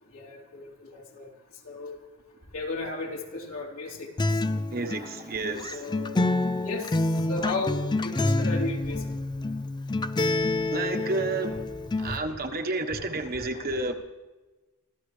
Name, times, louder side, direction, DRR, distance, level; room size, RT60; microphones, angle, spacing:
voice 1, 0.1-1.3 1.6-1.9 2.5-4.4 5.7-6.2 6.6-9.0 12.1-12.2, left 2 dB, 65° left, -1 dB, 3.5 m, -35 dB
Acoustic guitar, 4.2-12.2, left 2 dB, 20° left, 0.4 m, -28 dB
voice 2, 4.7-5.8 10.7-11.6 12.0-13.9, right 3 dB, 45° right, 4 dB, 1.3 m, -30 dB
26.0 x 14.5 x 3.4 m, 1.2 s
head